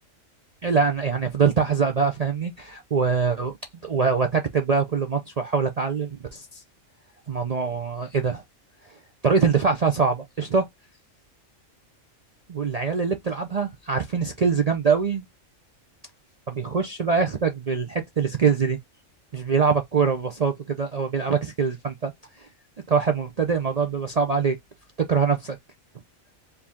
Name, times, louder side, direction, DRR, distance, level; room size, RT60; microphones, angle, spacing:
voice 1, 0.6-3.5 3.8-6.6 7.3-8.4 9.2-10.7 12.5-15.2 16.5-18.8 19.3-22.1 22.9-24.6 25.0-25.6, right 5 dB, 45° right, 0.5 m, -23 dB
4.6 x 2.7 x 3.6 m
omnidirectional pair, 1.3 m